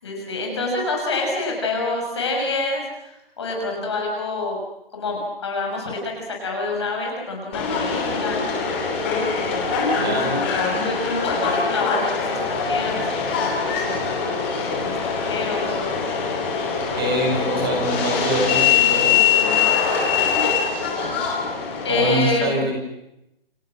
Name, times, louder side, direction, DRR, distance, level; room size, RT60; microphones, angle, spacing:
voice 1, 0.0-4.6 4.9-8.4 10.3-10.5 10.7-14.1 14.7-15.8 21.8-22.6, left 3 dB, 25° left, 0 dB, 6.6 m, -27 dB
Subway metro underground, 7.5-22.1, left 6 dB, 10° left, 3.2 m, -23 dB
voice 2, 10.0-10.4 16.9-19.8 21.9-22.7, right 1 dB, 25° right, 0 dB, 7.4 m, -24 dB
30.0 x 27.5 x 6.4 m, 0.86 s
hypercardioid pair, 180°, 30 cm